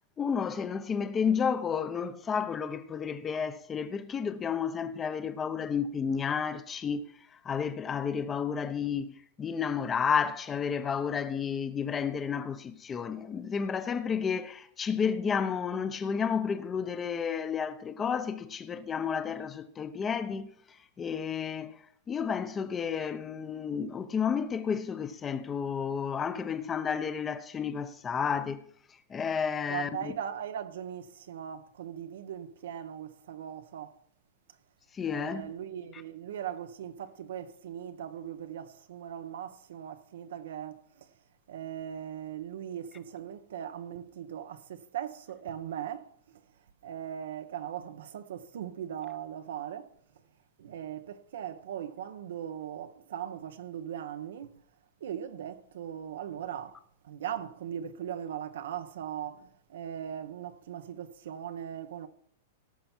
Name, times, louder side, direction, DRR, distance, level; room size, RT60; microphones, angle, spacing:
voice 1, 0.2-21.8 22.1-28.6 29.1-30.1 34.9-35.5 35.9-36.0, left 6 dB, 15° left, 0.7 m, -31 dB
voice 2, 29.7-34.0 35.1-41.1 41.5-46.4 46.8-49.9 50.6-54.5 55.0-62.1, right 9 dB, 80° right, 0.9 m, -39 dB
17.5 x 7.0 x 4.4 m
supercardioid pair, 165°, 0 cm